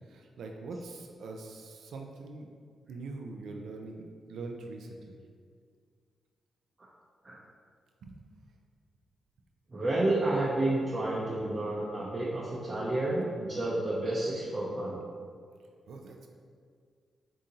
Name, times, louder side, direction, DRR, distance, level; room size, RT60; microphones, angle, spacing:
voice 1, 0.1-2.5 2.9-5.2 8.0-8.1 15.9-16.3, right 3 dB, 80° right, 2 dB, 0.4 m, -43 dB
voice 2, 9.7-15.0, right 2 dB, 40° right, -6 dB, 0.6 m, -30 dB
3.9 x 3.6 x 2.8 m, 2.1 s
cardioid pair, 60°, 0 cm